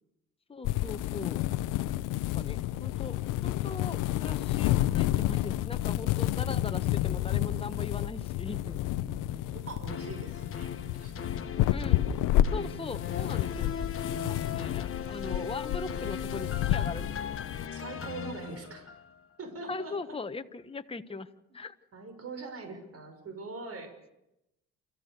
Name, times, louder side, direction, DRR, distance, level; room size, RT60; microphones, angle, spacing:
voice 1, 0.5-1.4 2.3-3.2 3.4-8.8 11.7-12.0 12.5-13.7 14.5-17.4 19.7-21.3 21.5-21.7, left 4 dB, 20° left, 8 dB, 1.3 m, -40 dB
sound 1, 0.6-17.7, left 14 dB, 85° left, 0.8 m, -30 dB
voice 2, 6.4-7.1 9.0-11.8 12.5-12.9 14.1-14.7 17.7-18.9 19.4-20.0 21.9-23.9, right 3 dB, 50° right, 6 dB, 6.1 m, -44 dB
sound 2, 9.9-19.3 19.7-19.8, left 7 dB, 45° left, 1.5 m, -39 dB
29.0 x 14.5 x 6.9 m, 0.87 s
supercardioid pair, 80°, 31 cm